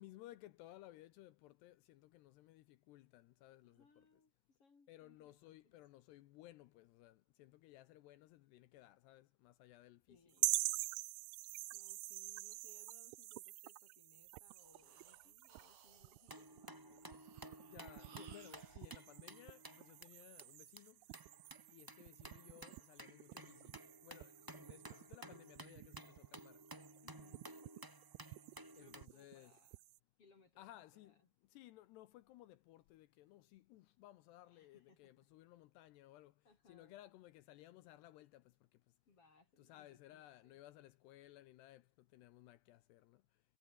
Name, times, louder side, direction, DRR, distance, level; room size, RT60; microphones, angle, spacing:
voice 1, 0.0-4.1 4.9-10.2 17.6-21.1 21.7-26.6 28.7-29.5 30.6-38.9 39.6-43.4, left 15 dB, 75° left, 2.7 m, -60 dB
voice 2, 3.6-5.8 10.1-10.5 11.7-17.2 18.3-18.5 19.9-20.0 24.4-24.9 27.0-27.5 28.8-29.8 30.2-31.3 34.5-35.2 36.4-37.0 39.1-40.6, left 4 dB, 35° left, 3.5 m, -70 dB
sound 1, 10.4-30.0, right 21 dB, 90° right, 2.3 m, -47 dB
Breathing, 14.3-18.9, right 6 dB, 65° right, 6.7 m, -66 dB
sound 2, 16.3-20.0 20.4-20.5 20.8-20.9 21.1-29.1, right 1 dB, 5° right, 2.0 m, -55 dB
omnidirectional pair, 5.4 m